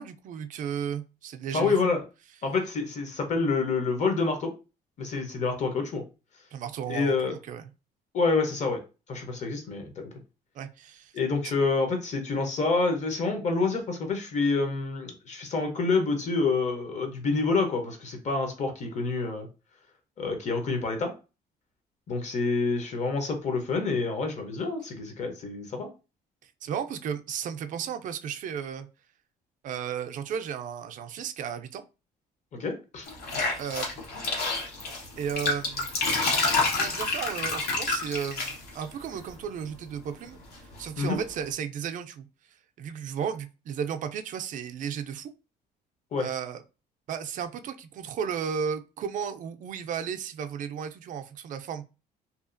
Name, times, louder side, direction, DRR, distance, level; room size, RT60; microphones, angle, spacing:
voice 1, 0.0-1.8 6.5-7.7 10.5-11.1 11.4-11.5 26.4-28.9 29.6-31.8 33.5-33.9 35.2-35.9 36.6-40.4 40.8-42.3 42.8-45.3 46.2-46.6 47.1-51.8, right 7 dB, 50° right, 0.4 m, -34 dB
voice 2, 1.5-2.0 2.4-4.5 5.0-6.0 6.9-7.4 8.1-8.8 9.1-10.1 11.1-19.5 20.2-21.1 22.1-25.9 32.5-33.1 41.0-41.2 46.1-46.3, left 4 dB, 45° left, 0.8 m, -27 dB
sound 1, 33.1-39.3 40.3-41.0, left 3 dB, 65° left, 1.0 m, -28 dB
2.7 x 2.3 x 2.5 m
cardioid pair, 110°, 17 cm